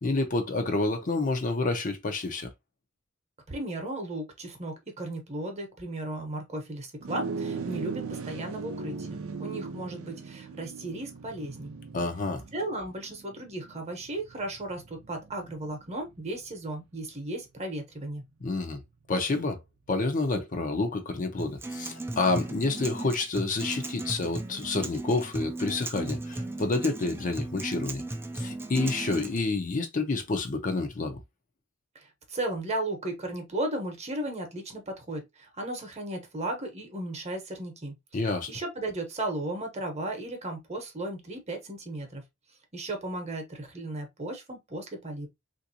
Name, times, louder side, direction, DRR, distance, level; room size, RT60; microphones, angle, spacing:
voice 1, 0.0-2.5 11.9-12.4 18.4-18.8 19.1-19.6 19.9-28.0 28.3-31.2 38.1-38.5, left 3 dB, 40° left, 0.6 m, -29 dB
voice 2, 3.5-11.7 12.5-18.2 31.9-37.9 38.5-42.2 42.7-45.3, right 1 dB, 30° right, 0.9 m, -35 dB
sound 1, 7.0-16.6, right 4 dB, 85° right, 0.5 m, -39 dB
Acoustic guitar, 21.4-29.4, right 2 dB, 10° right, 0.4 m, -36 dB
3.4 x 2.6 x 2.7 m
head